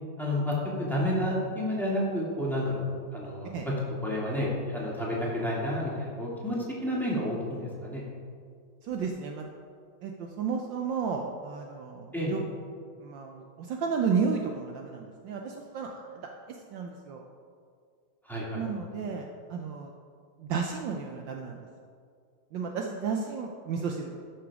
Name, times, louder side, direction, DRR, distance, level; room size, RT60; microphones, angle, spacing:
voice 1, 0.2-2.8 3.1-3.5 4.0-8.0 12.1-12.3 18.2-18.6, left 1 dB, ahead, -5 dB, 2.1 m, -30 dB
voice 2, 8.8-9.5 10.0-12.4 13.0-17.2 18.5-19.9 20.4-21.7 22.5-24.2, right 5 dB, 70° right, 2 dB, 1.3 m, -33 dB
13.0 x 6.2 x 4.8 m, 2.2 s
omnidirectional pair, 2.3 m